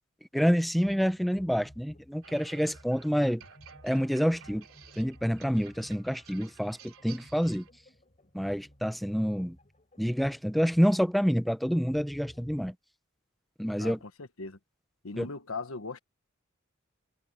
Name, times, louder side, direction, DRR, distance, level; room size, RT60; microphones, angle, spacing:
voice 1, 0.3-3.4 3.8-4.6 5.0-7.6 8.3-9.6 10.0-12.7 13.6-14.0 15.2-15.3, equal, ahead, 0.7 m, -27 dB
sound 1, 0.8-12.8, equal, 35° left, 4.2 m, -57 dB
sound 2, 2.2-7.7, right 7 dB, 75° right, 3.3 m, -53 dB
voice 2, 13.8-14.6 15.0-16.0, left 3 dB, 70° left, 1.4 m, -39 dB
head